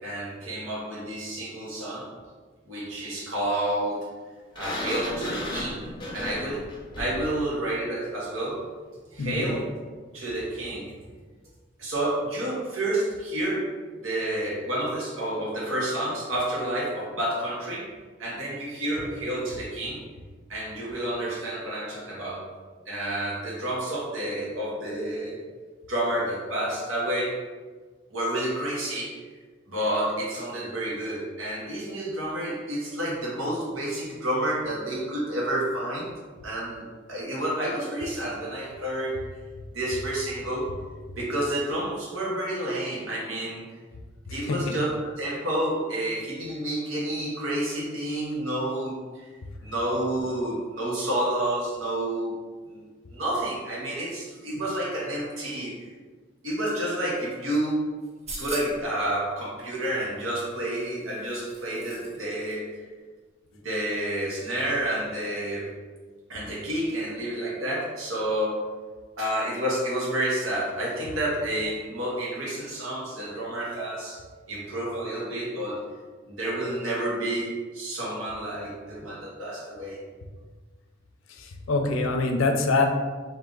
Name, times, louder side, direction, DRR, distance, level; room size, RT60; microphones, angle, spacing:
voice 1, 0.0-2.1 2.6-4.1 4.5-5.8 6.1-6.7 7.0-8.6 9.1-9.7 10.1-10.9 11.8-13.7 14.0-17.9 18.2-20.0 20.5-22.5 22.9-25.4 25.9-27.4 28.1-29.2 29.7-36.1 36.4-39.2 39.7-40.7 41.2-43.7 44.3-49.2 49.6-52.3 52.6-55.7 56.4-57.8 58.4-62.7 63.6-65.7 66.3-68.6 69.2-74.2 74.5-75.8 76.3-80.0, right 1 dB, 85° right, -4 dB, 1.2 m, -29 dB
Sliding door, 4.5-7.3, left 1 dB, 25° left, 0.8 m, -34 dB
voice 2, 9.2-9.5 44.3-44.7 81.4-82.9, left 3 dB, 85° left, 4 dB, 0.5 m, -25 dB
sound 1, 58.0-58.9 60.4-62.2 62.5-62.6, right 2 dB, 35° right, 0.7 m, -40 dB
3.6 x 2.7 x 3.8 m, 1.4 s
head